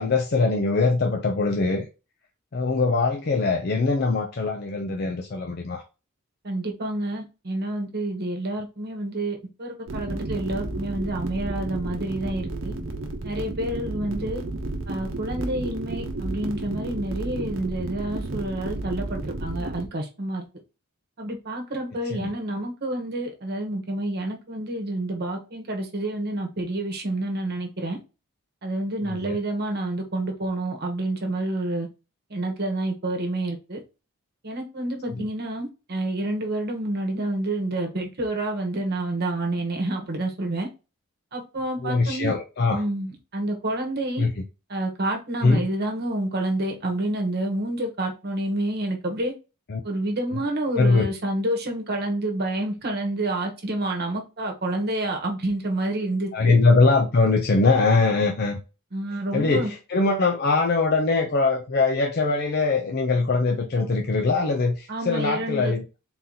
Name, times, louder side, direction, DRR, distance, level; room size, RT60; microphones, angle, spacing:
voice 1, 0.0-1.9 2.5-5.8 22.1-22.3 29.1-29.4 41.8-42.8 44.2-44.3 45.4-45.7 49.7-49.8 50.8-51.1 56.3-58.6 59.3-65.8, left 3 dB, 45° left, 0.5 m, -22 dB
voice 2, 6.4-12.7 13.2-14.4 14.9-20.4 21.2-28.0 28.6-31.9 32.3-33.8 34.4-40.7 41.3-42.3 42.7-44.2 44.7-49.3 49.8-56.6 58.9-59.7 64.9-65.7, right 1 dB, 45° right, 1.1 m, -28 dB
sound 1, 9.9-19.9, right 2 dB, 60° right, 0.8 m, -32 dB
3.9 x 2.8 x 3.9 m
head